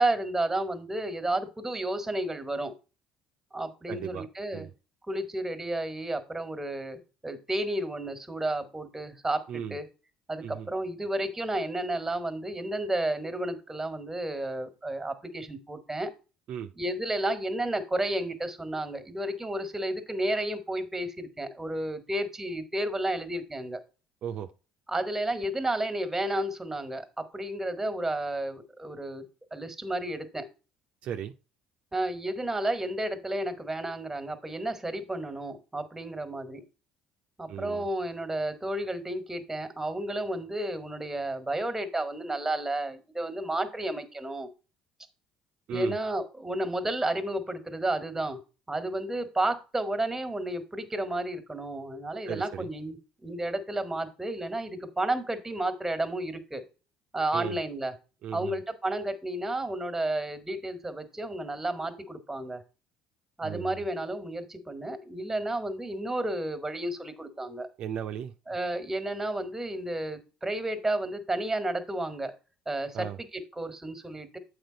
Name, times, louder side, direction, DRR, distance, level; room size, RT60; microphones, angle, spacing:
voice 1, 0.0-2.7 3.5-4.7 5.1-9.9 10.3-16.1 16.8-23.8 24.9-29.2 29.5-30.5 31.9-36.6 37.4-44.5 45.7-48.4 48.7-56.6 57.1-57.9 58.3-62.6 63.4-67.7 68.5-72.3 72.6-74.4, right 1 dB, 15° right, 1.6 m, -32 dB
voice 2, 3.9-4.3 4.5-4.7 9.5-9.8 10.4-10.7 16.5-16.7 24.2-24.5 31.0-31.3 37.5-37.9 45.7-46.0 52.3-52.7 57.3-57.6 58.2-58.6 63.4-63.8 67.8-68.3 72.9-73.2, right 9 dB, 60° right, 0.6 m, -36 dB
7.9 x 4.9 x 3.9 m
hypercardioid pair, 70°, 2 cm